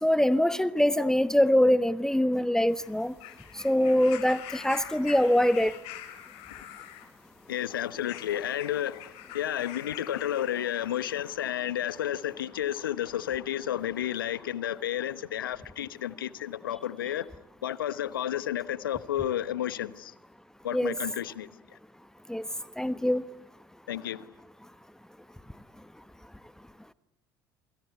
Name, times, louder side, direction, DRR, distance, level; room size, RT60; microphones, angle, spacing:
voice 1, 0.0-3.1 3.6-5.7 20.7-20.9 22.3-22.4 22.8-23.2, left 1 dB, 5° left, 1.1 m, -23 dB
sound 1, 2.7-11.4 12.3-12.4, left 12 dB, 65° left, 4.0 m, -46 dB
voice 2, 7.5-17.3 17.6-20.1 20.6-21.8 23.9-24.3, left 11 dB, 85° left, 1.1 m, -32 dB
28.0 x 24.5 x 8.2 m
hypercardioid pair, 65°, 11 cm